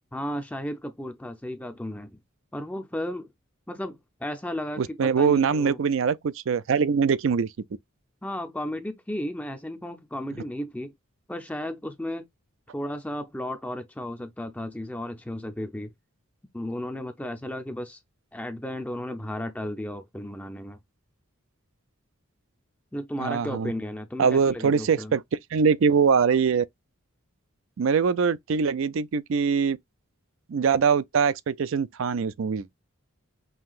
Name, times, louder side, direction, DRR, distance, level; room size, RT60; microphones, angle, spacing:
voice 1, 0.1-2.2 2.5-3.3 3.7-5.8 8.2-10.9 11.3-12.3 12.7-15.9 16.5-18.0 18.3-20.8 22.9-25.2, left 1 dB, 5° left, 0.5 m, -34 dB
voice 2, 4.8-7.5 23.2-23.7 24.2-25.2 25.5-26.7 27.8-29.8 30.5-32.7, right 6 dB, 65° right, 0.4 m, -23 dB
5.6 x 2.8 x 2.4 m
head